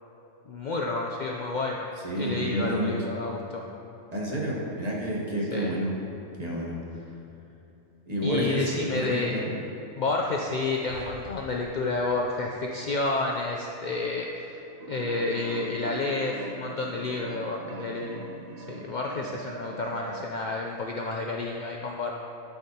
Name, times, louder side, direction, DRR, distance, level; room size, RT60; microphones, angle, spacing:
voice 1, 0.5-1.9 2.2-3.6 5.5-5.7 8.2-9.3 10.0-18.2 18.6-22.1, left 3 dB, 80° left, 0 dB, 0.4 m, -30 dB
voice 2, 2.0-3.0 4.1-5.9 6.4-6.8 8.1-9.5, equal, 35° right, -3 dB, 1.1 m, -29 dB
sound 1, 10.9-13.3, right 1 dB, 10° right, 1.5 m, -47 dB
sound 2, 14.8-20.3, right 4 dB, 60° right, 0.7 m, -41 dB
12.5 x 4.7 x 2.8 m, 3.0 s
omnidirectional pair, 1.3 m